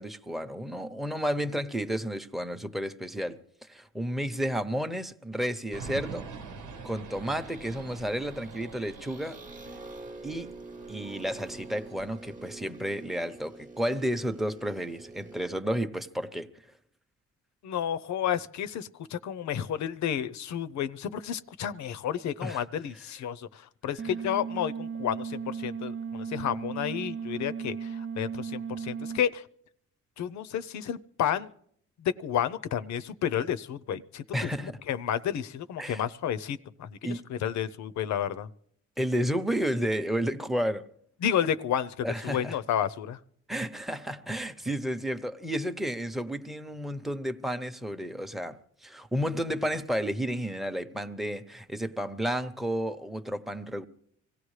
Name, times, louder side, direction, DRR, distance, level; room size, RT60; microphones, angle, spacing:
voice 1, 0.0-3.4 3.7-6.3 6.8-9.4 10.2-10.5 10.9-16.5 22.4-22.6 34.3-34.8 35.8-36.0 37.0-37.2 39.0-40.8 42.0-42.6 43.5-53.9, equal, ahead, 0.8 m, -32 dB
sound 1, 5.7-12.7, right 4 dB, 90° right, 1.2 m, -45 dB
sound 2, 5.8-15.5, right 3 dB, 25° right, 0.9 m, -47 dB
voice 2, 17.6-29.4 30.2-31.5 32.0-38.5 41.2-43.2, left 9 dB, 65° left, 0.7 m, -31 dB
sound 3, 24.0-29.2, right 6 dB, 40° right, 0.5 m, -36 dB
25.0 x 16.5 x 3.2 m
cardioid pair, 90°, 30 cm